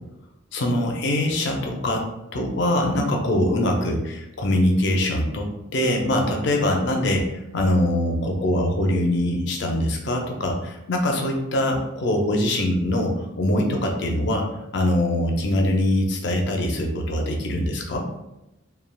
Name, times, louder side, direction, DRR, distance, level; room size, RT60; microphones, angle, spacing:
voice 1, 0.5-2.1 2.3-14.5 14.7-18.0, left 1 dB, 55° left, 2 dB, 0.5 m, -23 dB
3.2 x 2.3 x 2.2 m, 0.92 s
head